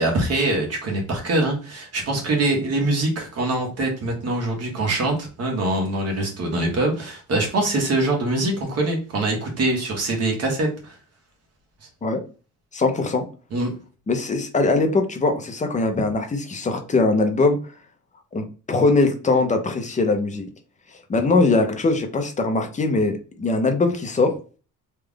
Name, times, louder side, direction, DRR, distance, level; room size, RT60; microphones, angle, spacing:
voice 1, 0.0-11.0 13.5-13.7, right 2 dB, 45° right, 1 dB, 1.5 m, -23 dB
voice 2, 12.7-13.2 14.1-17.6 18.3-20.5 21.1-24.3, left 3 dB, 20° left, 5 dB, 0.7 m, -21 dB
3.4 x 2.4 x 3.6 m, 0.35 s
cardioid pair, 140°, 33 cm